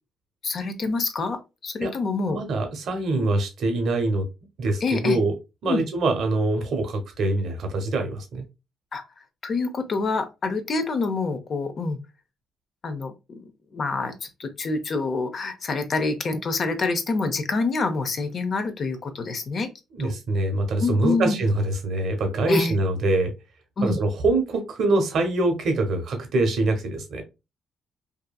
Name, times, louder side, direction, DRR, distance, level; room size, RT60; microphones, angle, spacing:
voice 1, 0.4-2.4 3.2-3.3 4.8-5.2 5.7-5.8 8.9-9.0 9.4-12.0 12.8-19.7 20.0-20.1 20.8-21.4 22.5-22.8 23.8-24.0, left 3 dB, 50° left, 8 dB, 0.6 m, -27 dB
voice 2, 2.3-4.2 4.6-5.3 5.6-8.4 19.9-23.3 23.8-27.2, right 2 dB, 65° right, 5 dB, 0.8 m, -24 dB
2.7 x 2.5 x 2.2 m, 0.26 s
cardioid pair, 90°, 0 cm